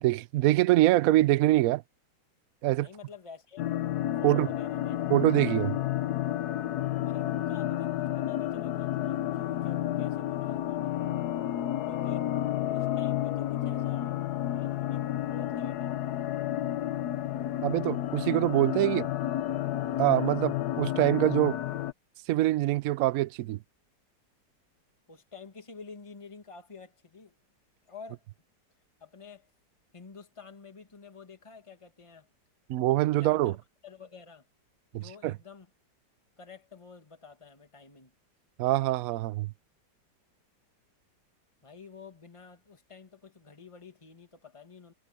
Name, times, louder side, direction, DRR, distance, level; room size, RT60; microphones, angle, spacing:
voice 1, 0.0-1.8 2.6-2.9 4.2-4.5 5.1-5.8 17.6-19.1 20.0-21.6 22.3-23.6 32.7-33.5 34.9-35.3 38.6-39.5, right 16 dB, 70° right, 0.9 m, -24 dB
voice 2, 2.8-3.9 4.2-5.0 7.0-10.9 11.9-12.3 12.7-14.1 14.5-15.9 25.1-27.3 27.9-28.2 29.0-29.5 29.9-32.3 33.2-33.6 33.8-34.5 34.9-35.7 36.4-38.1 41.6-44.9, left 4 dB, 15° left, 2.1 m, -49 dB
sound 1, 3.6-21.9, left 12 dB, 65° left, 1.2 m, -31 dB
omnidirectional pair, 1.9 m